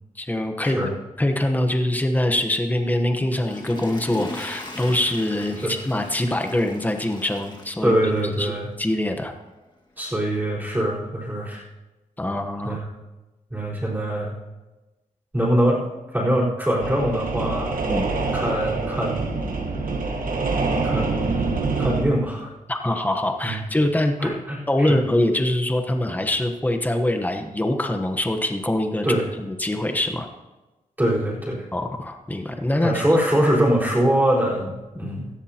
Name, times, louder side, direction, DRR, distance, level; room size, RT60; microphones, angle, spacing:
voice 1, 0.2-0.8 1.2-7.9 8.4-8.5 8.8-9.3 12.2-12.8 17.9-18.2 22.7-24.4 24.7-30.3 31.7-32.9 35.0-35.1, left 1 dB, 10° left, 5 dB, 1.1 m, -24 dB
Water / Toilet flush, 3.2-8.5 8.9-9.0, left 2 dB, 30° left, 1.9 m, -38 dB
voice 2, 7.8-8.7 10.0-11.6 12.6-12.9 13.5-14.3 15.3-15.8 16.1-17.8 18.3-19.3 20.8-21.4 21.8-22.5 23.4-23.6 24.2-25.0 29.0-29.3 31.0-31.7 32.8-35.3, right 1 dB, 10° right, -6 dB, 4.3 m, -23 dB
sound 1, 16.8-22.0, right 3 dB, 75° right, 1.3 m, -25 dB
17.5 x 14.5 x 2.9 m, 1.1 s
wide cardioid pair, 130°, 14 cm